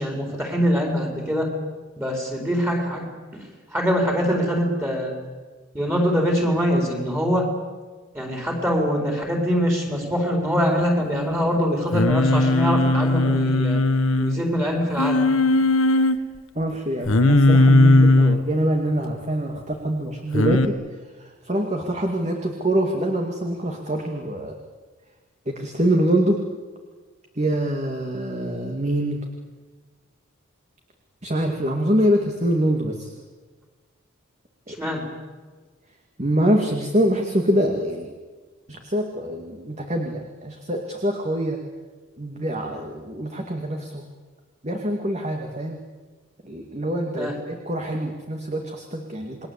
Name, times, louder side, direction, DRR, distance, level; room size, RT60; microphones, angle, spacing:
voice 1, 0.0-1.5 2.0-5.2 5.7-7.5 8.1-13.8 14.2-15.2 34.7-35.1 47.2-47.3, equal, 10° right, 2 dB, 4.5 m, -23 dB
Singing, 11.9-14.4 15.0-16.2 17.1-18.4 20.3-20.7, left 2 dB, 75° left, 1.5 m, -17 dB
voice 2, 16.6-20.7 21.2-24.5 25.5-26.4 27.4-29.2 31.2-33.1 34.7-34.8 36.2-38.1 38.7-41.6 42.2-44.0 44.6-45.8 46.4-49.5, right 1 dB, 30° right, 3 dB, 2.3 m, -24 dB
28.5 x 21.5 x 8.4 m, 1.4 s
head